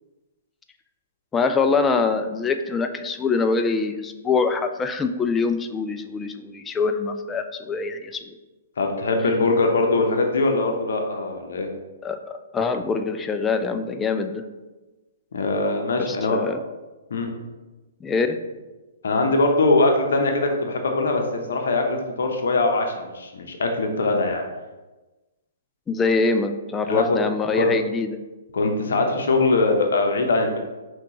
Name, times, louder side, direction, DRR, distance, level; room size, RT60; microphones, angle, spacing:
voice 1, 1.3-8.3 12.0-14.5 16.0-16.6 18.0-18.4 25.9-28.2, left 4 dB, 15° left, 7 dB, 0.3 m, -24 dB
voice 2, 8.8-11.7 15.3-16.4 17.1-17.3 19.0-24.5 26.9-27.2 27.5-27.7 28.5-30.6, left 2 dB, 70° left, 3 dB, 0.7 m, -22 dB
5.9 x 2.3 x 2.9 m, 1.2 s
figure-of-eight pair, 120°, 0 cm